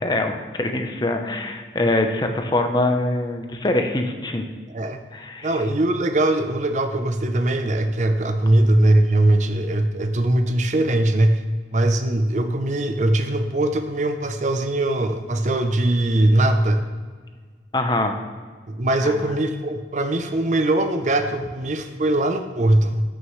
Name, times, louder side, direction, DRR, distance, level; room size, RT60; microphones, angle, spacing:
voice 1, 0.0-4.4 5.1-5.5 17.7-18.2 19.0-19.2, left 2 dB, 25° left, 4 dB, 0.7 m, -23 dB
voice 2, 5.4-11.4 11.7-16.8 18.7-23.0, right 1 dB, 40° right, 7 dB, 0.6 m, -21 dB
14.5 x 6.4 x 3.2 m, 1.5 s
head